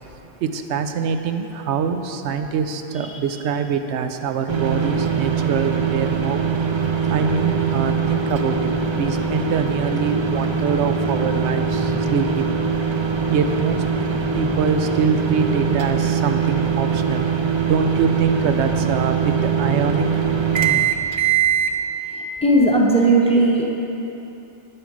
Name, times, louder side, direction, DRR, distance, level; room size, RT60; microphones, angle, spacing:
voice 1, 0.2-6.7 7.1-12.6 13.3-13.8 14.3-17.3 17.6-20.2, right 6 dB, 85° right, 7 dB, 0.9 m, -24 dB
sound 1, 4.5-21.7, right 6 dB, 50° right, 0.3 m, -22 dB
voice 2, 22.1-23.7, right 2 dB, 5° left, -1 dB, 0.7 m, -17 dB
8.9 x 7.7 x 4.8 m, 3.0 s
omnidirectional pair, 1.1 m